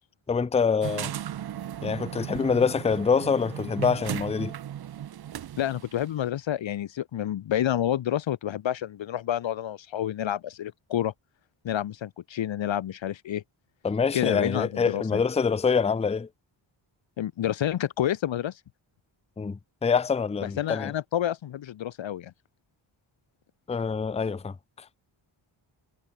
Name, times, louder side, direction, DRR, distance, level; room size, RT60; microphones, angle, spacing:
voice 1, 0.3-1.1 1.8-4.5 13.8-16.3 19.4-20.9 23.7-24.9, left 5 dB, 15° left, 0.5 m, -25 dB
sound 1, 0.8-6.1, right 10 dB, 50° right, 0.7 m, -36 dB
voice 2, 5.6-11.1 11.6-13.4 14.1-15.2 17.2-18.6 20.4-22.3, left 11 dB, 65° left, 1.0 m, -29 dB
cardioid pair, 75°, 49 cm